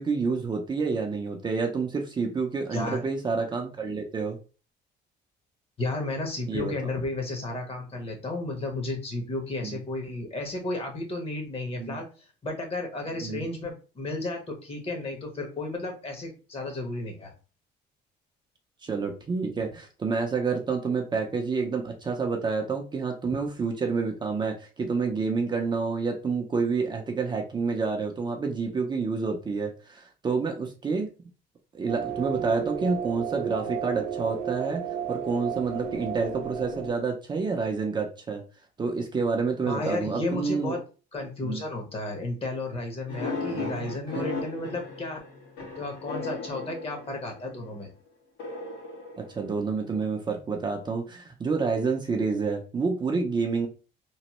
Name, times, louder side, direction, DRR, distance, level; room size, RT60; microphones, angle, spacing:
voice 1, 0.0-4.4 6.5-6.7 9.6-9.8 11.8-12.0 13.2-13.4 18.8-31.1 31.7-34.8 35.1-38.4 38.8-40.7 41.4-41.6 43.2-43.8 44.2-44.3 49.2-53.7, right 4 dB, 25° right, 2 dB, 0.5 m, -28 dB
voice 2, 2.7-3.1 5.8-12.1 12.4-17.3 39.7-40.8 41.1-45.2 45.8-47.9, left 2 dB, 35° left, 2 dB, 1.0 m, -33 dB
sound 1, 31.9-36.9, right 8 dB, 80° right, 0.6 m, -33 dB
sound 2, 43.1-47.6 48.4-49.9, left 3 dB, 75° left, 1.3 m, -36 dB
3.0 x 2.1 x 2.9 m, 0.35 s
cardioid pair, 110°, 17 cm